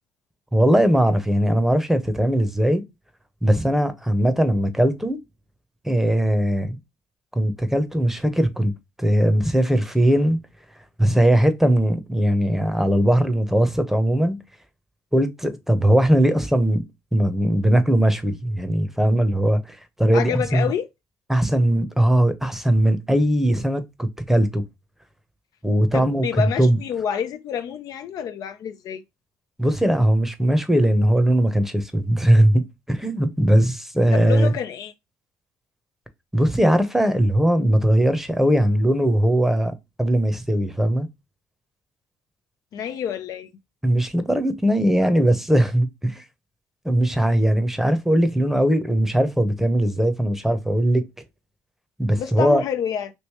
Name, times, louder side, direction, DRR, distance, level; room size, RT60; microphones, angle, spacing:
voice 1, 0.5-2.8 3.4-5.2 5.8-6.8 7.3-8.7 9.0-10.4 11.0-14.4 15.1-16.8 17.1-20.6 21.3-24.6 25.6-26.8 29.6-32.6 32.9-34.5 36.3-41.1 43.8-46.2 46.8-51.0 52.0-52.6, right 1 dB, 5° right, 0.8 m, -19 dB
voice 2, 20.1-20.9 25.9-29.0 34.1-34.9 42.7-43.5 52.2-53.1, left 8 dB, 60° left, 0.5 m, -28 dB
3.2 x 2.9 x 2.9 m
supercardioid pair, 70°, 7 cm